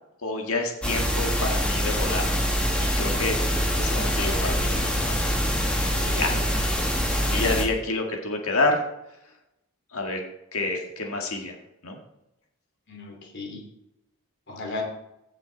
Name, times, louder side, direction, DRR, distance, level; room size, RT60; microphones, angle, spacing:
voice 1, 0.2-2.5 2.8-3.4 3.8-5.4 6.1-6.4 7.3-8.8 9.9-10.2 10.5-11.5 11.8-12.0, left 2 dB, 75° left, 2 dB, 1.8 m, -28 dB
sound 1, 0.8-7.6, equal, 5° left, 1.7 m, -24 dB
voice 2, 5.7-6.4 12.9-13.6 14.5-14.8, left 3 dB, 50° left, 1 dB, 3.0 m, -36 dB
16.0 x 6.1 x 4.0 m, 0.86 s
head